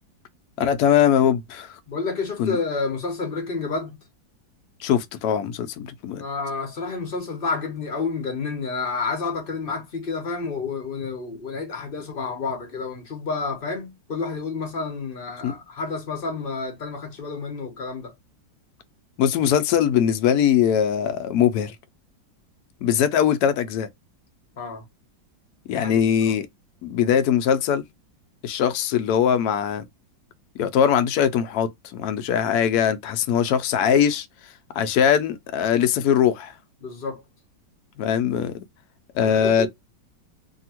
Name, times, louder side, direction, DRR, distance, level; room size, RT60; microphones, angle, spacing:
voice 1, 0.6-1.8 2.4-2.6 4.8-6.2 15.4-15.5 19.2-21.8 22.8-23.9 25.7-26.5 26.8-27.8 28.4-29.8 30.6-34.3 34.7-36.5 38.0-38.6 39.1-39.7, left 8 dB, 75° left, 0.9 m, -21 dB
voice 2, 1.9-4.0 6.2-18.1 24.6-24.8 25.7-26.0 26.3-26.4 36.8-37.2 39.2-39.7, left 4 dB, 45° left, 0.7 m, -30 dB
2.8 x 2.7 x 2.8 m
omnidirectional pair, 2.1 m